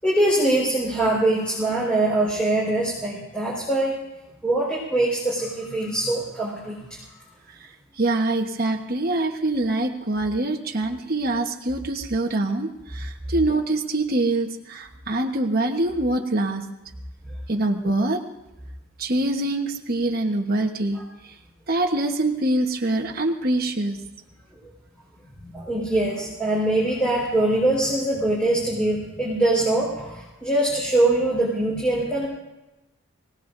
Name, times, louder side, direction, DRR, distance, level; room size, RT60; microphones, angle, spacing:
voice 1, 0.0-4.0 4.4-7.0 25.4-32.3, right 1 dB, 5° left, -7 dB, 4.7 m, -23 dB
voice 2, 8.0-16.6 17.5-18.2 19.0-21.0 21.7-24.0, right 2 dB, 45° right, 2 dB, 1.2 m, -24 dB
26.0 x 18.0 x 2.7 m, 0.99 s
head